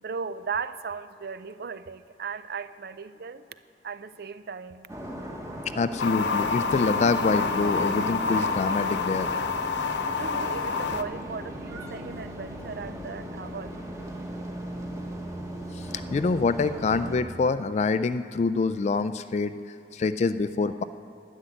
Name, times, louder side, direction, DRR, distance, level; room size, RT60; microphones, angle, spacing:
voice 1, 0.0-3.4 3.8-4.9 10.2-14.1, right 5 dB, 60° right, 14 dB, 0.5 m, -37 dB
sound 1, 4.9-17.2, right 1 dB, 20° right, 1.3 m, -37 dB
voice 2, 5.7-9.3 15.7-20.8, left 4 dB, 40° left, 12 dB, 0.3 m, -26 dB
sound 2, 6.0-11.0, left 5 dB, 80° left, 0.7 m, -28 dB
12.0 x 7.5 x 9.9 m, 2.6 s
head